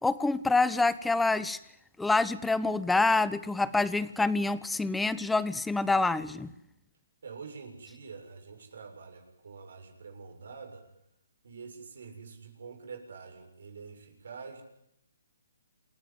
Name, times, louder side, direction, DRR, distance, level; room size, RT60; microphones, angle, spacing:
voice 1, 0.0-1.6 2.0-6.5, left 3 dB, 5° left, 16 dB, 1.0 m, -26 dB
voice 2, 7.2-10.8 11.4-14.6, right 5 dB, 70° right, 5 dB, 7.1 m, -46 dB
28.0 x 16.0 x 9.5 m, 0.78 s
hypercardioid pair, 145°, 0 cm